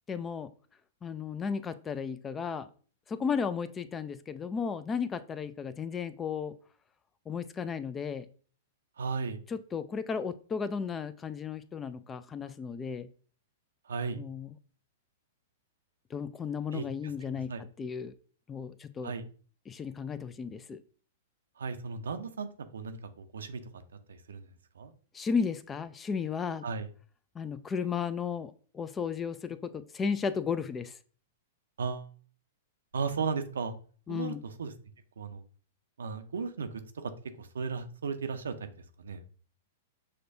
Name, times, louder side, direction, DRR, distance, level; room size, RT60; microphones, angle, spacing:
voice 1, 0.1-0.5 1.0-2.7 3.1-6.6 7.3-8.3 9.5-13.1 14.2-14.5 16.1-18.1 18.5-19.1 19.7-20.8 25.1-26.6 27.4-30.9 34.1-34.4, left 6 dB, 20° left, 14 dB, 0.3 m, -34 dB
voice 2, 9.0-9.4 13.9-14.2 16.7-16.9 17.5-17.6 19.0-19.2 21.6-22.5 22.7-23.6 24.1-24.4 24.8-24.9 26.6-26.9 31.8-32.1 32.9-33.7 34.1-34.3 34.6-34.7 35.2-35.4 36.0-36.7 37.4-38.5 39.0-39.2, right 5 dB, 80° right, 8 dB, 0.5 m, -35 dB
6.4 x 2.2 x 2.6 m, 0.42 s
hypercardioid pair, 110°, 0 cm